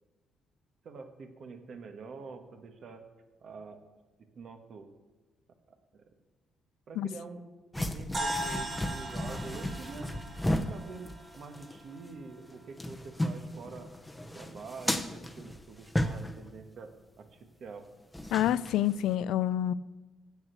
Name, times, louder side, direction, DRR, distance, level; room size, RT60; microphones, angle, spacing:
voice 1, 0.8-3.0 3.4-3.9 4.3-4.9 5.7-6.0 6.9-7.4 7.8-10.2 10.7-13.9 14.3-17.8, right 4 dB, 60° right, 6 dB, 1.2 m, -46 dB
sound 1, 7.7-11.8 12.0-12.1 12.5-16.5 18.1-19.1, left 1 dB, 10° left, 0.8 m, -35 dB
sound 2, 8.1-12.7, right 1 dB, 35° right, 1.6 m, -39 dB
voice 2, 18.3-19.7, left 12 dB, 85° left, 18 dB, 0.3 m, -27 dB
8.1 x 7.1 x 8.1 m, 1.2 s
cardioid pair, 90°, 0 cm